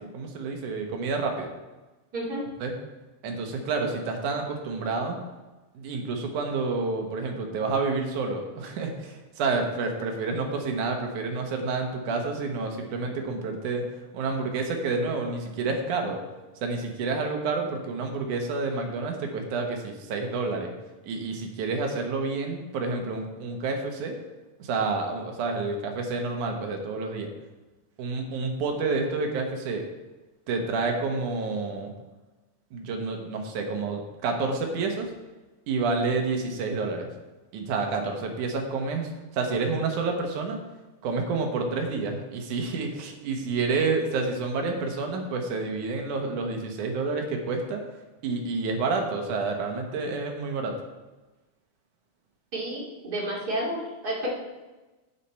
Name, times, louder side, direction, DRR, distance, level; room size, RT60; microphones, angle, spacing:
voice 1, 0.0-1.5 2.6-2.7 3.2-5.2 5.7-13.9 14.1-16.2 16.6-20.7 21.0-24.1 24.6-27.3 28.0-29.8 30.5-31.9 32.7-35.1 35.7-37.1 37.5-40.6 41.0-47.8 48.2-50.7, right 3 dB, 75° right, 3 dB, 2.7 m, -29 dB
voice 2, 2.1-2.5 52.5-54.3, right 1 dB, 30° right, -4 dB, 2.5 m, -31 dB
9.0 x 8.4 x 4.3 m, 1.1 s
omnidirectional pair, 3.6 m